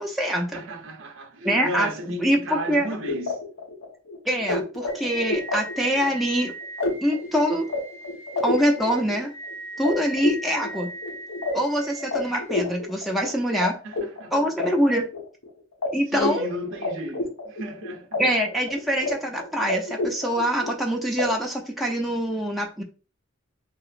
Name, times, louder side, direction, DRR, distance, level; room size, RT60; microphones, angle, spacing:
voice 1, 0.0-0.6 1.4-3.0 4.2-6.5 7.0-7.7 8.4-9.3 9.8-10.9 11.5-13.7 14.3-15.0 15.9-16.5 18.2-22.8, equal, ahead, 0.4 m, -24 dB
voice 2, 0.5-3.4 13.8-14.3 16.1-18.2, right 1 dB, 65° right, 0.6 m, -34 dB
sound 1, 2.5-13.7 13.9-15.5 15.8-15.9 16.1-18.2 18.4-19.1 19.4-20.8 21.2-21.3, left 2 dB, 70° left, 0.9 m, -30 dB
2.9 x 2.9 x 2.4 m
head